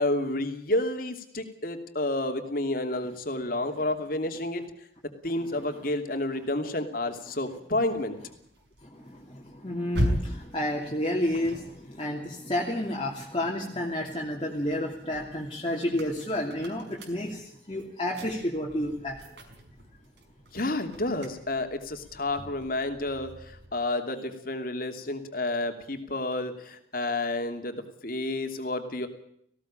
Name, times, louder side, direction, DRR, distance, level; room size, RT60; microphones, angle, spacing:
voice 1, 0.0-4.6 5.2-8.1 20.5-29.1, left 2 dB, 55° left, 6 dB, 2.8 m, -30 dB
sound 1, 7.1-13.6 14.0-23.8, equal, 80° right, 5.7 m, -39 dB
voice 2, 8.8-19.3, left 1 dB, 30° left, -2 dB, 2.9 m, -31 dB
19.0 x 17.0 x 8.8 m, 0.69 s
head